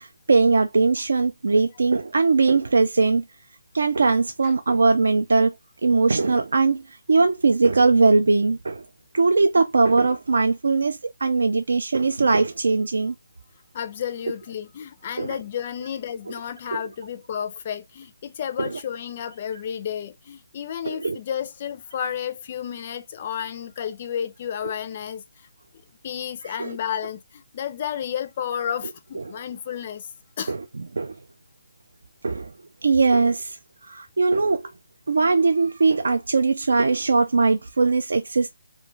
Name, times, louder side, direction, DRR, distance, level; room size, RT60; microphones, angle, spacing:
voice 1, 0.0-3.2 3.7-5.5 5.8-8.8 9.1-13.1 15.2-15.4 16.7-16.8 18.6-18.7 20.9-21.2 26.4-26.7 29.2-29.3 30.5-30.6 30.9-31.1 32.2-32.5 32.8-33.6 33.8-34.7 35.1-38.5, right 4 dB, 70° right, 0.3 m, -20 dB
voice 2, 13.7-25.2 26.0-30.1 30.4-30.6, left 9 dB, 30° left, 0.4 m, -31 dB
2.3 x 2.1 x 3.1 m
hypercardioid pair, 165°, 0 cm